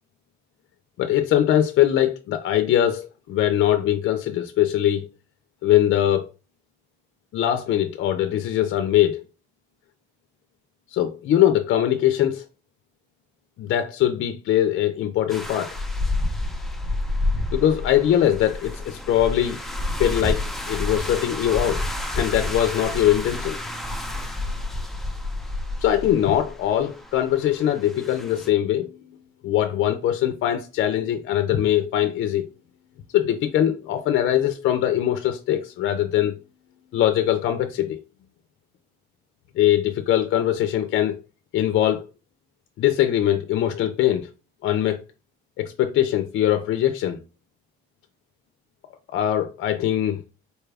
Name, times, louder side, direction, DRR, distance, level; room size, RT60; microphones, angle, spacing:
voice 1, 1.0-5.1 5.6-6.3 7.3-9.2 10.9-12.5 13.6-15.7 17.5-19.6 20.0-23.6 25.8-29.2 29.4-32.5 33.1-36.3 36.9-38.0 39.6-41.2 41.5-42.0 42.8-44.3 44.6-45.0 45.6-47.2 49.1-50.2, left 11 dB, 65° left, 0.5 m, -22 dB
sound 1, 15.3-28.5, left 2 dB, ahead, 0.7 m, -29 dB
4.3 x 2.2 x 3.3 m
cardioid pair, 100°, 21 cm